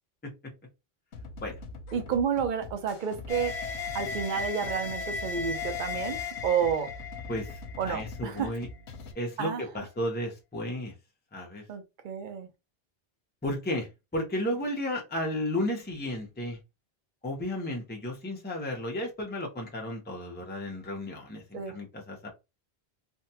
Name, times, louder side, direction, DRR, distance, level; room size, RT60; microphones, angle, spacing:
sound 1, 1.1-9.1, left 3 dB, 90° left, 0.9 m, -43 dB
voice 1, 1.9-3.5 3.9-6.9 7.8-8.5 9.4-9.6 11.7-12.5 21.5-21.7, right 7 dB, 55° right, 0.7 m, -30 dB
sound 2, 3.3-8.6, left 5 dB, 60° left, 0.3 m, -36 dB
voice 2, 7.3-7.6 7.9-8.7 9.1-10.9 11.3-11.6 13.4-16.6 17.2-22.3, left 1 dB, 10° left, 0.6 m, -33 dB
3.5 x 2.2 x 2.7 m
omnidirectional pair, 1.1 m